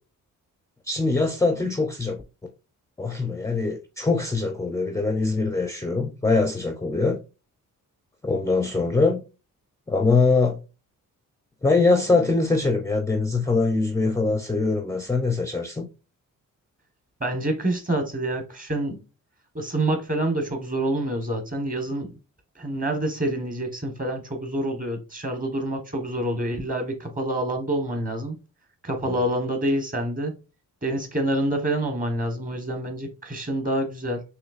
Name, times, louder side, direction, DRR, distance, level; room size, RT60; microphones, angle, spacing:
voice 1, 0.9-2.2 3.0-7.2 8.2-9.2 9.9-10.6 11.6-15.9 29.1-29.2, left 3 dB, 10° left, 0.4 m, -23 dB
voice 2, 17.2-19.0 19.5-22.2 22.6-28.4 28.8-30.3 30.8-34.2, right 1 dB, 25° right, 1.2 m, -27 dB
6.3 x 3.0 x 2.4 m
wide cardioid pair, 145°, 33 cm